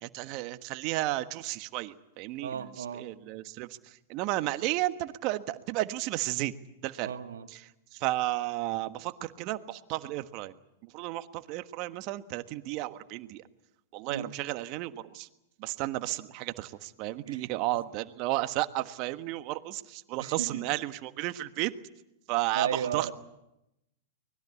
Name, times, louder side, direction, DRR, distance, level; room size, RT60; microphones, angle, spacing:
voice 1, 0.0-6.5 6.8-7.1 7.5-7.6 7.9-10.5 10.9-13.4 13.9-15.3 15.6-21.7 22.3-23.1, right 17 dB, 45° right, 11 dB, 1.4 m, -33 dB
voice 2, 2.4-3.0 7.0-7.5 14.1-14.3 17.3-17.5 20.2-20.5 22.5-23.1, right 7 dB, 75° right, 7 dB, 2.0 m, -34 dB
24.5 x 20.5 x 8.5 m, 0.87 s
hypercardioid pair, 110°, 0 cm